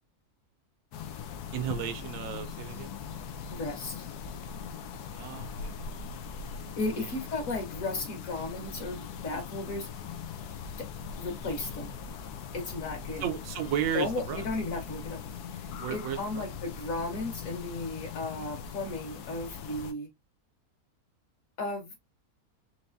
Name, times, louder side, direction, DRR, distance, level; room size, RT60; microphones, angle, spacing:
sound 1, 0.9-19.9, left 6 dB, 85° left, 1.2 m, -40 dB
voice 1, 1.5-2.9 5.1-6.2 7.0-7.3 13.2-14.4 15.8-16.5, right 10 dB, 65° right, 1.1 m, -34 dB
voice 2, 3.5-4.0 6.8-9.9 10.8-10.9 11.2-11.9 12.5-13.3 13.9-15.2 15.5-20.1 21.6-22.0, left 2 dB, 60° left, 1.9 m, -35 dB
4.6 x 3.1 x 2.7 m
omnidirectional pair, 1.6 m